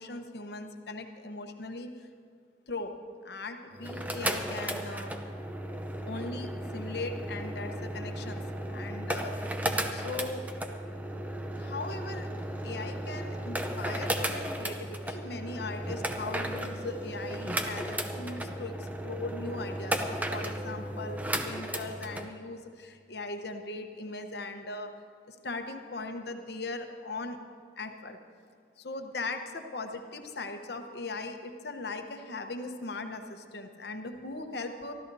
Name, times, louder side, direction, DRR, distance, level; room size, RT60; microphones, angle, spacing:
voice 1, 0.0-1.9 2.7-2.9 3.2-5.1 6.1-6.5 6.7-8.4 8.7-9.5 9.9-10.4 11.6-12.3 12.6-18.8 19.0-24.9 25.4-27.4 27.8-28.2 28.8-34.9, left 3 dB, 55° left, 6 dB, 1.0 m, -39 dB
sound 1, 3.7-22.3, right 1 dB, 10° right, 0.6 m, -35 dB
24.0 x 14.0 x 2.7 m, 2.1 s
head